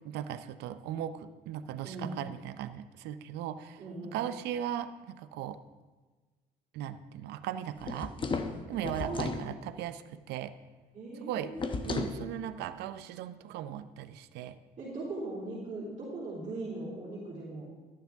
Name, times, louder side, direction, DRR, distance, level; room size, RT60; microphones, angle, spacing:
voice 1, 0.0-3.8 4.1-5.6 6.7-8.1 8.7-10.5 11.2-11.5 11.9-14.6, right 10 dB, 85° right, 11 dB, 0.6 m, -38 dB
voice 2, 1.8-2.1 3.8-4.2 9.0-9.2 10.9-12.2 14.8-17.7, right 2 dB, 40° right, -7 dB, 3.2 m, -39 dB
sound 1, 7.8-9.5 11.6-12.2, left 4 dB, 30° left, 0.8 m, -34 dB
12.5 x 9.9 x 3.5 m, 1.3 s
cardioid pair, 110°, 17 cm